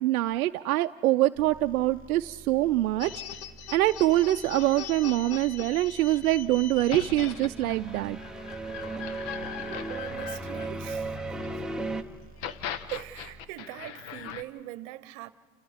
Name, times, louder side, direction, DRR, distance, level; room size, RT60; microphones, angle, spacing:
voice 1, 0.0-3.1 3.7-8.2, right 16 dB, 85° right, 0.5 m, -24 dB
sound 1, 1.3-13.5, right 2 dB, 20° right, 2.8 m, -51 dB
sound 2, 3.0-11.5 12.2-14.4, left 9 dB, 55° left, 1.0 m, -40 dB
sound 3, 7.0-12.0, right 2 dB, ahead, 0.8 m, -36 dB
voice 2, 9.6-11.2 12.9-15.3, right 16 dB, 60° right, 0.9 m, -41 dB
29.5 x 28.0 x 3.6 m
hypercardioid pair, 115°, 42 cm